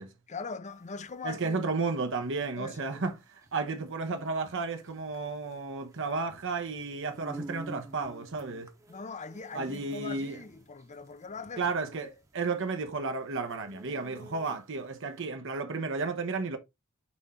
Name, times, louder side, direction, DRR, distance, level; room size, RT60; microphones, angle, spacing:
voice 1, 0.3-1.7 2.6-3.0 8.9-11.7 12.0-12.1, left 4 dB, 35° left, 0.6 m, -41 dB
sound 1, 0.7-14.9, right 1 dB, 15° right, 1.0 m, -49 dB
voice 2, 1.2-8.7 9.5-10.4 11.6-16.6, right 4 dB, 60° right, 0.9 m, -33 dB
6.1 x 4.4 x 3.7 m
head